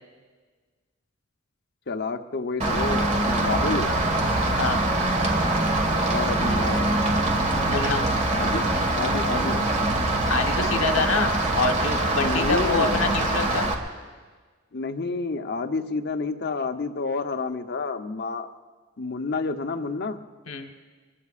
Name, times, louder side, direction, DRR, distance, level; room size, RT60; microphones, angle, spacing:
voice 1, 1.9-3.9 6.1-6.9 8.3-8.6 8.9-9.7 12.2-13.0 14.7-18.5 19.0-20.2, left 3 dB, 55° left, 5 dB, 0.9 m, -29 dB
Rain, 2.6-13.7, right 2 dB, 35° right, 1.8 m, -23 dB
voice 2, 7.6-8.0 10.3-13.7 20.5-20.7, left 4 dB, 85° left, 4 dB, 1.2 m, -26 dB
24.0 x 23.0 x 2.5 m, 1.4 s
head